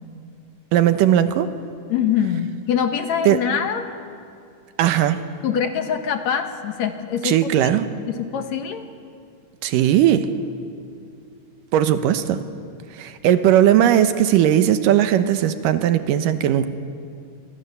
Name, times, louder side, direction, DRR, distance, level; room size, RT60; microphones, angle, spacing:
voice 1, 0.7-1.5 3.3-3.4 4.8-5.2 7.2-7.9 9.6-10.3 11.7-12.4 13.0-16.7, right 11 dB, 80° right, 10 dB, 2.6 m, -17 dB
voice 2, 1.9-3.8 5.4-7.5 8.1-8.8, left 8 dB, 65° left, 7 dB, 2.2 m, -24 dB
27.5 x 24.0 x 6.9 m, 2.4 s
omnidirectional pair, 3.9 m